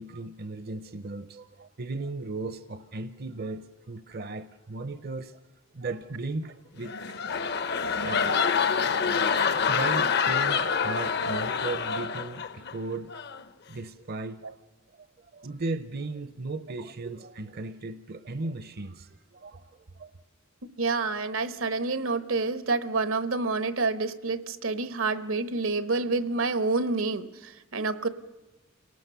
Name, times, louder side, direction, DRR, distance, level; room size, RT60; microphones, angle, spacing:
voice 1, 0.0-5.4 5.7-7.0 7.3-7.5 7.8-8.8 9.4-13.1 13.7-14.4 14.9-20.1, right 2 dB, 50° right, 12 dB, 0.6 m, -36 dB
sound 1, 6.8-12.7 13.1-13.4, left 6 dB, 55° left, 0.7 m, -26 dB
voice 2, 20.8-28.1, right 3 dB, 80° right, 12 dB, 1.0 m, -28 dB
28.5 x 18.0 x 6.8 m, 1.1 s
head